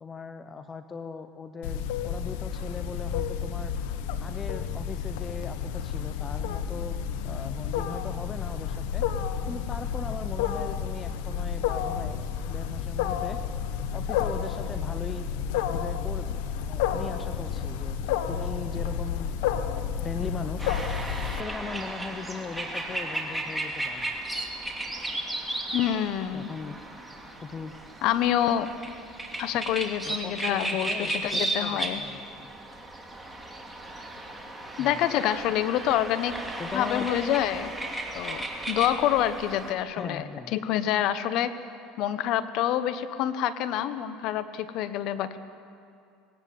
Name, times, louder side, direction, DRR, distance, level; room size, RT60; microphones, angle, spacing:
voice 1, 0.0-3.7 4.2-9.0 9.5-12.2 12.5-13.4 13.9-15.3 15.6-18.0 18.3-20.7 21.4-24.1 26.3-26.8 27.4-27.7 30.0-32.5 34.8-35.0 36.6-37.1 40.0-40.5, left 5 dB, 25° left, 9 dB, 0.9 m, -39 dB
Wild animals, 1.6-21.4, left 8 dB, 80° left, 1.2 m, -31 dB
sound 1, 20.6-39.7, right 1 dB, 5° right, 2.7 m, -35 dB
voice 2, 25.7-26.5 28.0-28.7 29.4-32.0 34.8-36.4 36.7-37.7 38.1-41.5 42.0-45.4, left 11 dB, 60° left, 13 dB, 1.0 m, -27 dB
20.5 x 17.0 x 8.6 m, 2.5 s
supercardioid pair, 105°, 0 cm